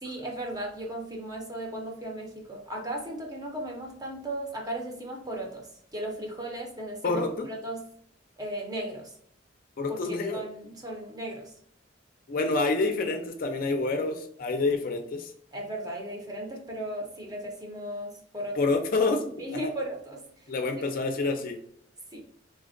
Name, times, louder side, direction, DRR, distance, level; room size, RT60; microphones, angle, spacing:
voice 1, 0.0-7.9 8.4-9.1 9.9-11.5 15.5-18.7 19.4-20.2 22.1-22.2, right 1 dB, 20° right, 0 dB, 0.6 m, -36 dB
voice 2, 7.0-7.5 9.8-10.4 12.3-15.3 18.6-19.3 19.6-19.7 20.5-21.6, left 3 dB, 50° left, 4 dB, 0.4 m, -27 dB
3.2 x 2.1 x 2.5 m, 0.66 s
head